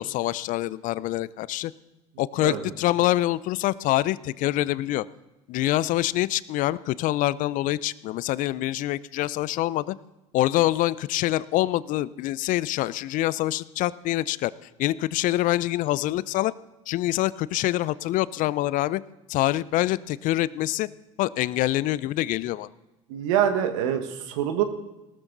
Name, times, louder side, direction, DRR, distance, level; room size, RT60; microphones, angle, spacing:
voice 1, 0.0-1.7 2.2-5.0 5.5-10.0 10.3-14.5 14.8-16.5 16.9-19.0 19.3-20.9 21.2-22.7, left 15 dB, 55° left, 20 dB, 0.6 m, -25 dB
voice 2, 23.1-24.6, right 10 dB, 70° right, 8 dB, 1.8 m, -25 dB
18.5 x 13.0 x 4.0 m, 1.0 s
hypercardioid pair, 80°, 17 cm